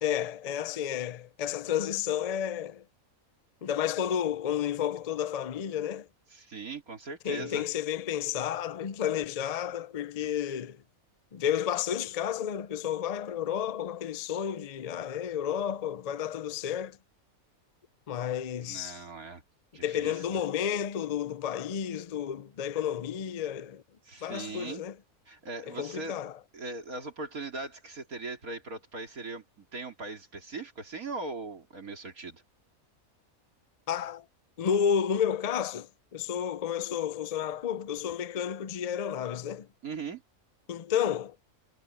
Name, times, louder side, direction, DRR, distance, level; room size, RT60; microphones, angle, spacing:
voice 1, 0.0-2.8 3.6-6.1 7.2-10.8 11.3-17.0 18.1-19.0 19.8-23.8 24.2-24.9 25.7-26.4 33.9-34.3 34.6-39.7 40.7-41.4, left 9 dB, 60° left, 0.4 m, -31 dB
voice 2, 6.3-7.7 10.2-10.3 18.6-19.4 19.7-20.4 24.0-24.9 25.3-26.2 26.5-32.4 39.8-40.2, right 3 dB, 75° right, 3.6 m, -40 dB
omnidirectional pair, 1.5 m